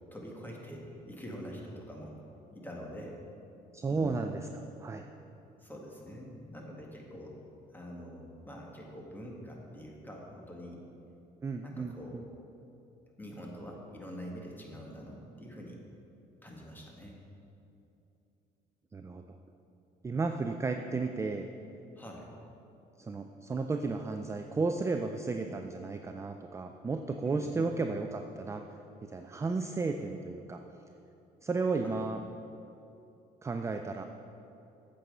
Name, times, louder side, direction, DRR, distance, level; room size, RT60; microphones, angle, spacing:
voice 1, 0.1-2.1 2.5-3.2 3.9-4.1 5.6-7.4 7.7-10.8 11.6-12.3 13.2-15.8 16.4-17.2 22.0-22.3 27.2-27.7 31.8-32.0, equal, 10° left, -1 dB, 1.7 m, -45 dB
voice 2, 3.7-5.1 11.4-12.2 18.9-19.2 20.0-21.5 23.0-28.6 29.0-30.6 31.4-32.2 33.4-34.0, right 3 dB, 15° right, 6 dB, 0.4 m, -33 dB
8.4 x 7.5 x 5.4 m, 2.8 s
cardioid pair, 110°, 17 cm